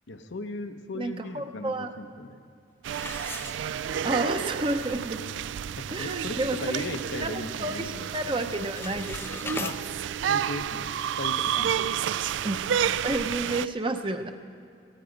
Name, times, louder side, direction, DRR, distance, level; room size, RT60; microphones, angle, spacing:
voice 1, 0.1-2.4 5.8-8.4 9.6-9.8 10.3-11.9, left 2 dB, 90° left, 7 dB, 1.0 m, -37 dB
voice 2, 0.9-1.9 4.0-5.2 5.9-6.8 7.2-7.3 7.6-9.7 12.4-12.6 13.0-14.3, right 2 dB, 25° right, 7 dB, 0.7 m, -30 dB
sound 1, 2.8-13.7, right 9 dB, 85° right, 0.3 m, -30 dB
sound 2, 2.9-4.2 4.6-4.7 5.3-5.4 5.8-6.1 6.5-7.6 7.9-8.2 8.5-9.8, left 3 dB, 10° left, 0.4 m, -39 dB
17.5 x 15.0 x 5.2 m, 2.4 s
head